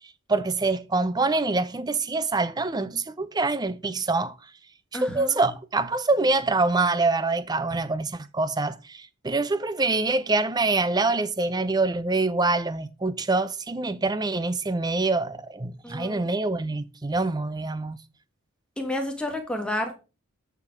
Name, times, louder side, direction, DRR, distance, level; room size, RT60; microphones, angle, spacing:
voice 1, 0.3-4.3 4.9-18.0, right 3 dB, 20° right, 0.5 m, -25 dB
voice 2, 4.9-5.4 15.8-16.3 18.8-19.9, left 1 dB, 5° left, 1.5 m, -30 dB
8.8 x 6.0 x 4.8 m
head